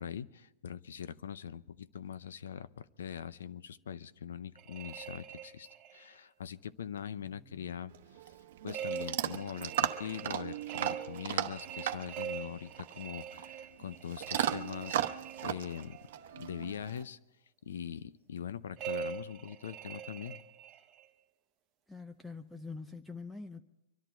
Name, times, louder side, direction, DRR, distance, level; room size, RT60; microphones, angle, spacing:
voice 1, 0.0-7.9 8.6-16.0 16.4-17.2 17.6-20.4, left 8 dB, 80° left, 0.7 m, -42 dB
sound 1, 4.6-6.1 8.7-16.1 18.8-21.1, right 8 dB, 25° right, 1.0 m, -43 dB
voice 2, 7.2-7.7 21.9-23.6, left 4 dB, 5° left, 0.5 m, -45 dB
Chewing mastication / Dog, 7.9-17.0, right 11 dB, 60° right, 0.9 m, -37 dB
25.0 x 11.5 x 4.5 m
hypercardioid pair, 150°, 0 cm